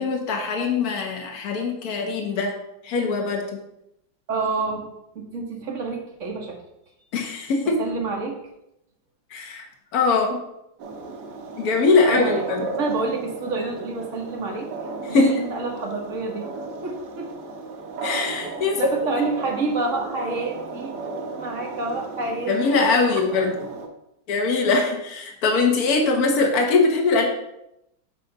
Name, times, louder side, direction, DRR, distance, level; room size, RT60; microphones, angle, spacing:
voice 1, 0.0-2.5 2.8-3.6 7.1-7.8 9.3-9.6 9.9-10.4 11.6-12.7 15.1-15.3 18.0-18.8 22.5-23.5 24.3-27.3, left 4 dB, 55° left, 2 dB, 1.5 m, -21 dB
voice 2, 4.3-4.9 5.1-6.6 7.8-8.4 12.1-12.4 12.8-14.7 15.1-16.5 16.8-17.3 18.8-20.9 21.4-22.8 23.1-23.5, right 3 dB, 45° right, 1 dB, 1.4 m, -28 dB
sound 1, 10.8-23.9, right 3 dB, 65° right, 1.4 m, -35 dB
7.7 x 3.3 x 5.3 m, 0.83 s
omnidirectional pair, 2.0 m